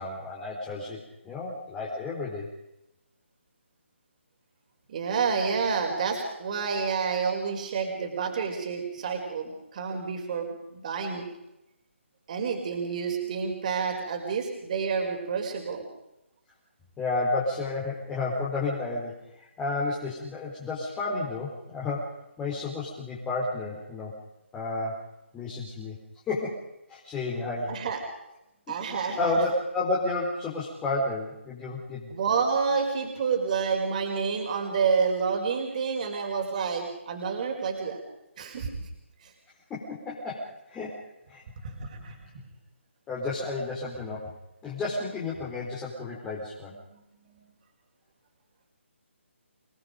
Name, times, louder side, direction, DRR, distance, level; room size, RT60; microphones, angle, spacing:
voice 1, 0.0-2.5 17.0-24.1 24.5-25.1 25.3-26.0 26.3-26.6 26.9-27.8 28.7-32.1 39.7-41.4 42.0-42.1 43.1-44.3 44.6-46.7, left 2 dB, 10° left, -5 dB, 4.1 m, -31 dB
voice 2, 4.9-11.2 12.3-15.8 27.7-28.0 28.7-29.4 32.1-38.0 38.4-38.7 41.6-42.1, right 5 dB, 35° right, 3 dB, 5.1 m, -29 dB
28.0 x 20.0 x 5.3 m, 0.86 s
hypercardioid pair, 165°, 7 cm